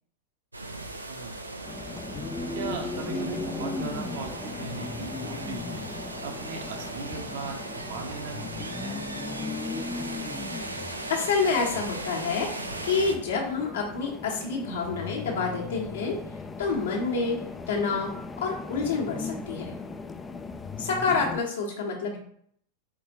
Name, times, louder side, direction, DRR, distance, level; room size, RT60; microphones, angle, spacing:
sound 1, 0.5-13.2, right 2 dB, 80° right, 0.4 m, -38 dB
voice 1, 1.1-1.7 2.5-5.9 6.2-9.0 21.1-21.2, right 4 dB, 55° right, 3 dB, 0.8 m, -39 dB
sound 2, 1.6-21.4, left 3 dB, 15° left, 0.3 m, -37 dB
voice 2, 11.1-16.2 16.6-17.4 17.7-18.1 18.4-19.7 20.8-22.2, left 4 dB, 65° left, -2 dB, 1.3 m, -28 dB
4.2 x 3.7 x 3.0 m, 0.64 s
figure-of-eight pair, 90°, 0 cm